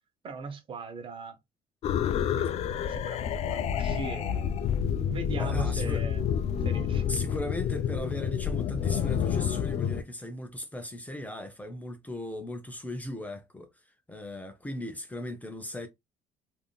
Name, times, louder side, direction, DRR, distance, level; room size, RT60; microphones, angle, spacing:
voice 1, 0.2-1.4 2.4-2.5 2.9-4.5 5.1-6.2 6.6-7.0, right 4 dB, 45° right, 0.8 m, -39 dB
sound 1, 1.8-10.0, left 8 dB, 55° left, 0.4 m, -29 dB
voice 2, 5.4-6.1 7.1-13.7 14.1-15.9, left 1 dB, 10° left, 0.6 m, -37 dB
3.5 x 2.5 x 2.3 m
cardioid pair, 95°, 13 cm